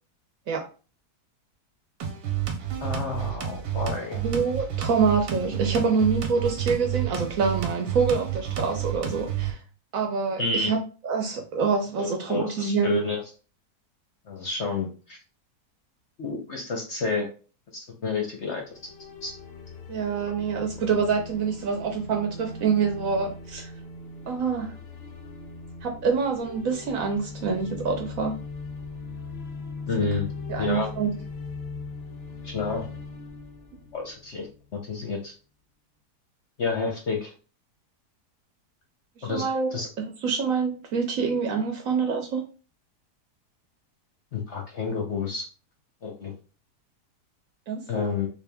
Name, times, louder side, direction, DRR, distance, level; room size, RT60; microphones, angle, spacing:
sound 1, 2.0-9.5, right 10 dB, 90° right, 1.3 m, -30 dB
voice 1, 2.8-4.2 10.4-10.7 12.0-13.2 14.3-15.2 16.2-17.3 17.7-18.8 19.2-19.3 29.9-30.3 30.6-30.9 32.4-32.9 33.9-34.5 34.7-35.3 36.6-37.3 39.2-39.5 39.7-39.9 44.3-45.5 46.0-46.3 47.9-48.3, left 4 dB, 55° left, 0 dB, 0.8 m, -29 dB
voice 2, 4.2-9.6 9.9-10.8 11.0-13.0 19.9-23.7 24.3-24.7 25.8-28.4 30.0-30.1 30.5-31.1 39.3-39.8 40.2-42.5 47.7-47.8, right 5 dB, 65° right, 3 dB, 1.0 m, -26 dB
sound 2, 18.7-34.7, left 3 dB, 90° left, 0.5 m, -40 dB
3.5 x 2.5 x 3.4 m, 0.35 s
omnidirectional pair, 1.8 m